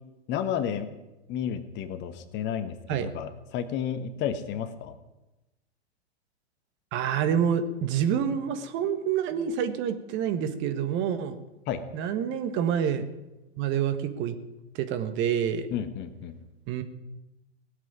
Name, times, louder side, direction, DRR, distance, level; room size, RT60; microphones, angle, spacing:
voice 1, 0.3-0.9 1.3-4.9 11.7-11.8 15.7-16.4, left 9 dB, 35° left, 10 dB, 1.4 m, -32 dB
voice 2, 6.9-11.4 11.9-13.0 13.6-14.3 14.7-15.7 16.7-16.8, right 8 dB, 35° right, 10 dB, 1.5 m, -27 dB
17.5 x 8.2 x 9.3 m, 0.99 s
hypercardioid pair, 115°, 33 cm